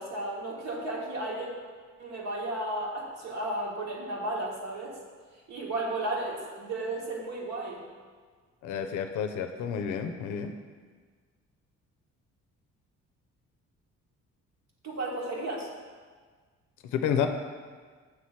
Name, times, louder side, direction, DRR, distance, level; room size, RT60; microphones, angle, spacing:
voice 1, 0.0-1.5 2.0-5.0 5.5-7.8 14.8-15.7, right 1 dB, 60° right, -2 dB, 1.4 m, -34 dB
voice 2, 8.6-10.5 16.9-17.3, left 8 dB, 85° left, 6 dB, 0.5 m, -30 dB
6.5 x 3.2 x 5.6 m, 1.6 s
cardioid pair, 90°, 30 cm